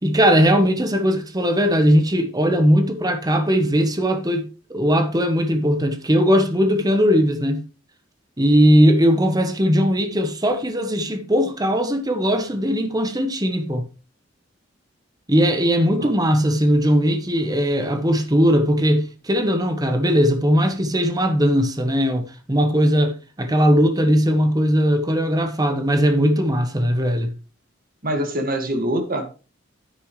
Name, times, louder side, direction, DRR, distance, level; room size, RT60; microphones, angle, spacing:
voice 1, 0.0-7.6 8.4-13.9 15.3-27.3, equal, 20° right, 1.2 m, -19 dB
voice 2, 28.0-29.4, right 1 dB, 50° right, 2.0 m, -24 dB
9.7 x 9.7 x 3.2 m
head